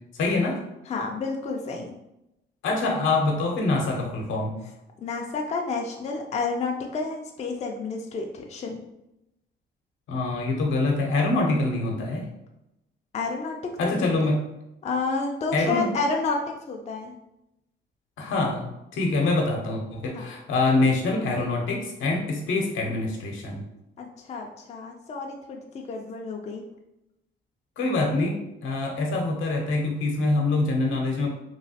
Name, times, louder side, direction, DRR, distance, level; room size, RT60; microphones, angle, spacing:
voice 1, 0.1-0.6 2.6-4.5 10.1-12.2 13.8-14.4 15.5-15.9 18.2-23.6 27.8-31.3, left 2 dB, 75° left, 0 dB, 0.8 m, -25 dB
voice 2, 0.9-1.9 5.0-8.8 13.1-14.1 14.8-16.4 16.7-17.1 20.1-20.3 24.0-26.6, left 4 dB, 35° left, 1 dB, 0.4 m, -30 dB
3.0 x 2.3 x 2.8 m, 0.88 s
cardioid pair, 90°, 20 cm